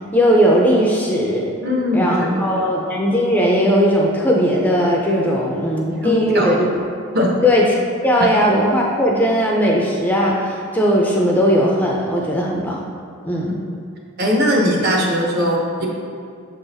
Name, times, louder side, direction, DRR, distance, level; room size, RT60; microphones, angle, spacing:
voice 1, 0.1-1.5 1.9-6.7 7.4-7.8 8.0-12.8 13.2-13.5, equal, 10° left, -2 dB, 0.5 m, -17 dB
voice 2, 1.6-2.5 6.0-6.5 7.1-7.3 14.2-15.9, equal, 50° right, -1 dB, 0.9 m, -19 dB
6.5 x 3.9 x 4.0 m, 2.3 s
head